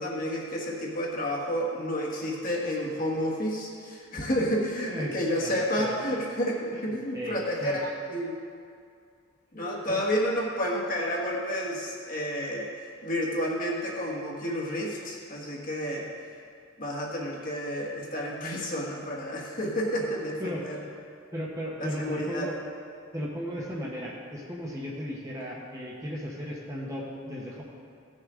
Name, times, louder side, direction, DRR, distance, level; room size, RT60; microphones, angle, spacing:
voice 1, 0.0-8.4 9.5-12.7 13.0-16.1 16.8-20.8 21.8-22.5, equal, 40° left, -3 dB, 1.5 m, -30 dB
voice 2, 5.4-6.2 6.7-6.8 7.1-7.8 9.9-10.0 20.4-20.7 21.3-22.6 23.1-27.6, equal, 15° right, -4 dB, 1.0 m, -36 dB
16.0 x 6.6 x 3.7 m, 2.4 s
head